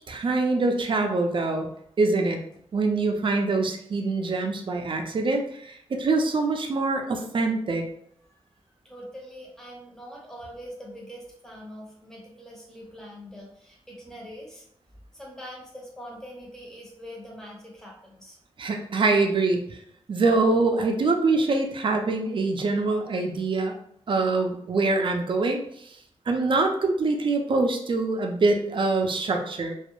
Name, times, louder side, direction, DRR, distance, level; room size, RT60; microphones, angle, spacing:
voice 1, 0.1-1.7 2.0-2.4 2.7-7.8 18.6-19.6 20.1-23.8 24.1-25.6 26.3-29.7, right 3 dB, 50° right, 4 dB, 0.4 m, -24 dB
voice 2, 8.8-14.6 15.1-18.4, equal, 5° left, -2 dB, 0.8 m, -43 dB
2.2 x 2.0 x 3.0 m, 0.69 s
wide cardioid pair, 95°, 10 cm